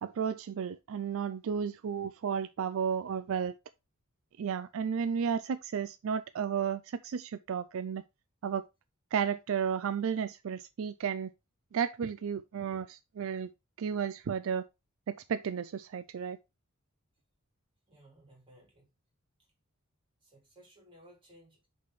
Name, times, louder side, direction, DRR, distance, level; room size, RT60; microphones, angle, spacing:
voice 1, 0.0-3.5 4.4-8.0 8.4-8.6 9.1-11.3 11.7-13.5 13.8-14.6 15.1-16.4, right 7 dB, 65° right, 0.4 m, -33 dB
voice 2, 17.9-18.9 19.4-19.5 20.2-21.7, right 1 dB, 25° right, 3.9 m, -59 dB
8.4 x 4.3 x 3.1 m
head